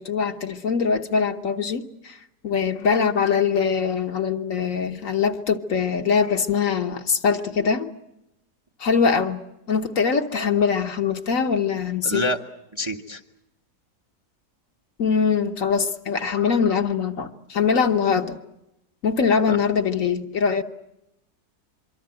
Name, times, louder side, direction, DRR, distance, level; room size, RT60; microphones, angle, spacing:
voice 1, 0.0-2.2 2.4-7.9 8.8-12.2 15.0-18.4 19.0-20.6, left 6 dB, 60° left, 1.5 m, -22 dB
voice 2, 12.0-12.4 12.7-13.2 19.5-19.6, equal, 20° right, 0.9 m, -26 dB
25.0 x 24.0 x 7.7 m
omnidirectional pair, 1.6 m